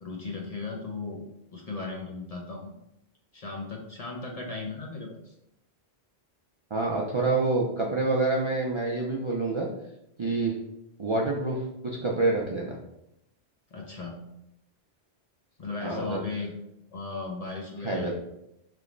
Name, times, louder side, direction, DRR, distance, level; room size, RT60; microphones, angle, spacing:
voice 1, 0.0-1.2 1.5-2.8 3.3-5.3 13.7-14.2 15.6-16.5 16.9-18.1, left 3 dB, 45° left, 0 dB, 0.6 m, -36 dB
voice 2, 6.7-9.7 10.2-10.5 11.0-12.8 15.8-16.2 17.8-18.1, right 3 dB, 45° right, -2 dB, 0.4 m, -27 dB
3.3 x 3.0 x 3.8 m, 0.83 s
omnidirectional pair, 1.1 m